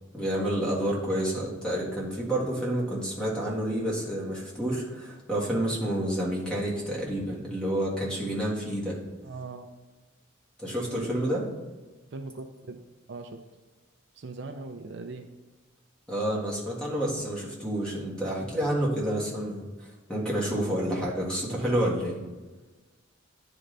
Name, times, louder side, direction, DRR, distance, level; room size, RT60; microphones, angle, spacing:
voice 1, 0.1-9.0 10.6-11.4 16.1-22.2, right 1 dB, 5° left, -5 dB, 1.6 m, -29 dB
voice 2, 9.2-9.7 10.8-11.2 12.1-12.8 13.1-13.4 14.1-15.3 21.5-21.7, right 3 dB, 60° right, 5 dB, 0.5 m, -40 dB
10.0 x 3.9 x 3.3 m, 1.2 s
head